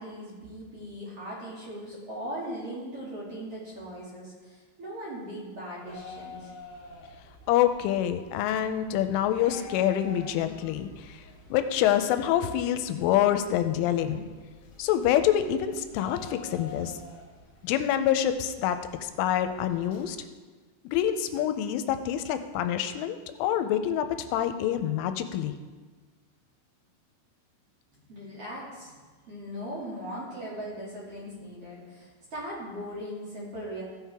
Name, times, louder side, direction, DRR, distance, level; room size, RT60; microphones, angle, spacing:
voice 1, 0.0-6.5 28.1-28.9 29.3-33.8, equal, 40° right, -7 dB, 2.6 m, -39 dB
sound 1, 5.8-20.1, left 2 dB, 70° left, 1.4 m, -48 dB
voice 2, 7.5-11.2 11.5-14.3 14.8-17.0 17.6-20.2 20.8-25.6, left 11 dB, 90° left, 9 dB, 3.1 m, -26 dB
16.0 x 7.4 x 3.5 m, 1.4 s
omnidirectional pair, 5.6 m